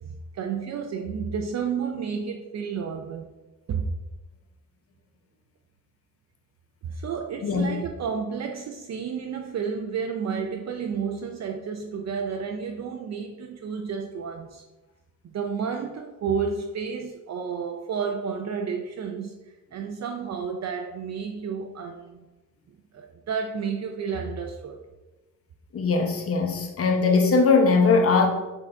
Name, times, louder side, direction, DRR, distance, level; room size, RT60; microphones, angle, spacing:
voice 1, 0.0-3.3 3.7-3.9 6.8-14.6 15.2-19.3 19.7-22.3 22.9-24.8, right 6 dB, 50° right, 3 dB, 0.5 m, -31 dB
voice 2, 7.4-7.8 25.7-28.3, left 4 dB, 40° left, 3 dB, 0.9 m, -20 dB
6.0 x 3.9 x 4.4 m, 1.1 s
wide cardioid pair, 175°, 34 cm